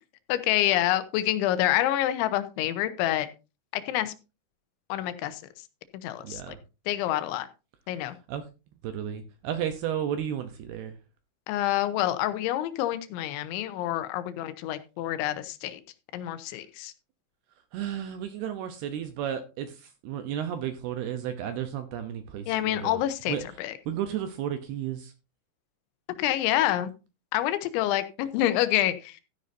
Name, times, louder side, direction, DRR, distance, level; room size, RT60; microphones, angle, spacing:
voice 1, 0.3-3.3 3.7-4.1 4.9-5.4 5.9-6.6 6.9-7.5 7.9-8.2 11.5-15.8 16.1-16.9 22.5-23.7 26.2-26.9 27.3-29.2, left 13 dB, 85° left, 12 dB, 3.2 m, -27 dB
voice 2, 6.2-6.6 8.3-8.4 8.8-11.0 17.7-23.0 23.3-23.4 23.9-25.1, right 10 dB, 75° right, 8 dB, 2.6 m, -33 dB
13.5 x 10.0 x 2.7 m, 0.29 s
omnidirectional pair, 5.3 m